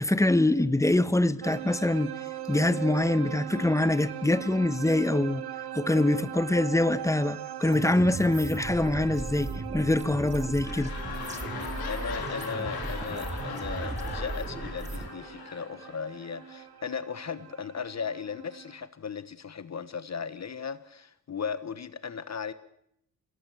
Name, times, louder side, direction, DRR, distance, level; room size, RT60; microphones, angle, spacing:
voice 1, 0.0-2.1 2.5-5.4 5.7-10.9, left 1 dB, 10° left, 1.1 m, -24 dB
sound 1, 1.4-18.9, right 12 dB, 85° right, 1.3 m, -40 dB
voice 2, 3.5-3.9 11.9-22.5, left 6 dB, 45° left, 1.2 m, -37 dB
sound 2, 7.7-15.1, right 2 dB, 20° right, 2.2 m, -37 dB
sound 3, 10.2-16.5 17.2-17.3, left 5 dB, 85° left, 6.3 m, -39 dB
26.0 x 17.5 x 7.8 m
cardioid pair, 100°, 37 cm